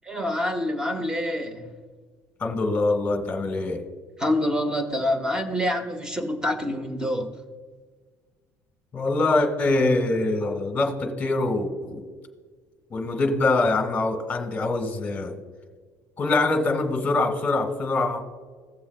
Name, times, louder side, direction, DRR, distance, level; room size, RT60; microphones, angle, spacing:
voice 1, 0.0-1.7 4.2-7.3, left 1 dB, 10° right, 5 dB, 1.0 m, -26 dB
voice 2, 2.4-3.8 8.9-12.0 12.9-15.3 16.2-18.2, left 2 dB, 20° left, 4 dB, 1.5 m, -24 dB
16.5 x 7.2 x 2.3 m, 1.5 s
cardioid pair, 150°, 7 cm